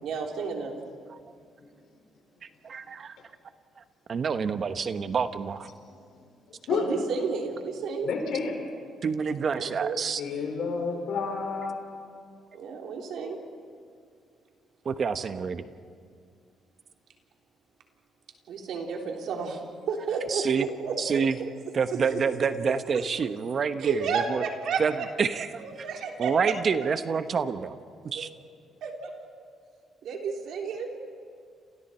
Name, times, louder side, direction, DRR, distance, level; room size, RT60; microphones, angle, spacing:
voice 1, 0.0-0.7 6.7-8.1 9.5-10.0 12.5-13.4 18.5-19.6 19.9-21.5 21.9-22.2 22.9-23.1 23.8-25.1 25.6-26.6 28.1-28.3 28.8-29.1 30.0-30.9, right 5 dB, 75° right, 1 dB, 3.5 m, -32 dB
voice 2, 2.6-3.2 4.1-5.7 9.0-10.2 14.8-15.7 20.3-20.7 21.0-21.4 21.7-24.4 24.8-25.6 26.2-27.8 28.0-28.3, right 6 dB, 50° right, 10 dB, 1.1 m, -28 dB
voice 3, 8.1-8.5 10.2-11.8, left 5 dB, 80° left, 1 dB, 5.3 m, -29 dB
30.0 x 27.5 x 4.5 m, 2.2 s
cardioid pair, 90°, 0 cm